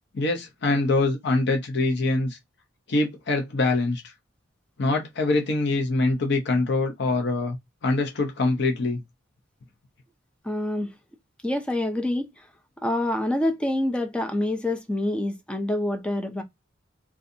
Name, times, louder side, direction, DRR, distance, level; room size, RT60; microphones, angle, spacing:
voice 1, 0.1-2.4 2.9-4.1 4.8-7.6 7.8-9.0, left 2 dB, 55° left, 0.6 m, -24 dB
voice 2, 10.4-10.9 11.4-12.4 12.8-16.4, left 1 dB, 5° left, 0.3 m, -26 dB
2.6 x 2.3 x 2.5 m
head